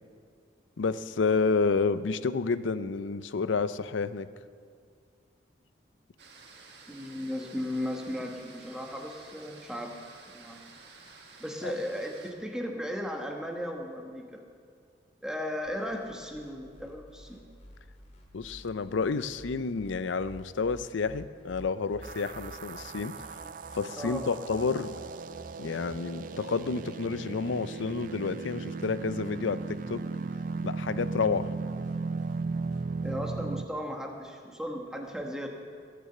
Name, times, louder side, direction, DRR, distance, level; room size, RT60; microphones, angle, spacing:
voice 1, 0.8-4.3 11.6-11.7 18.3-23.3 23.7-24.9 25.6-30.0 30.6-31.5, left 4 dB, 85° left, 14 dB, 0.5 m, -30 dB
sound 1, 6.2-12.3, right 4 dB, 60° right, 1.9 m, -52 dB
voice 2, 6.9-10.0 10.3-10.6 11.4-14.4 15.2-17.4 23.9-24.3 33.0-35.5, equal, 5° right, 2 dB, 1.1 m, -36 dB
sound 2, 15.6-33.2, equal, 40° left, 2.0 m, -53 dB
sound 3, 22.0-33.7, right 4 dB, 45° right, 0.4 m, -36 dB
19.5 x 6.8 x 7.8 m, 2.2 s
head